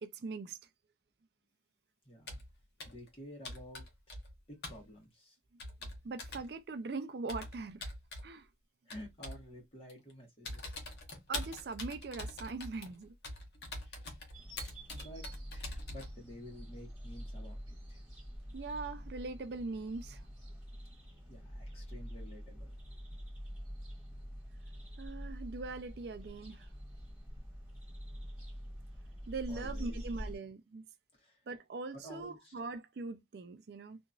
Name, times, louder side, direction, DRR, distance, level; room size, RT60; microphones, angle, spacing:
voice 1, 0.0-0.6 6.0-7.9 8.2-8.5 11.3-13.1 18.5-20.3 25.0-26.7 29.3-30.8 31.5-34.0, right 3 dB, 55° right, 0.4 m, -41 dB
voice 2, 2.0-2.4 2.9-4.2 4.5-5.4 8.9-10.8 13.8-14.1 14.9-18.0 21.3-22.8 29.5-30.0 31.1-31.4 31.9-32.5, equal, 30° left, 1.3 m, -51 dB
Computer keyboard, 2.3-2.5 2.8-3.1 3.5-4.4 4.6-4.8 5.6-6.5 7.3-8.3 8.9-9.5 9.9-10.1 10.5-16.1, left 2 dB, 60° left, 0.9 m, -44 dB
sound 1, 14.3-30.4, equal, 5° right, 1.9 m, -46 dB
2.9 x 2.6 x 2.3 m
head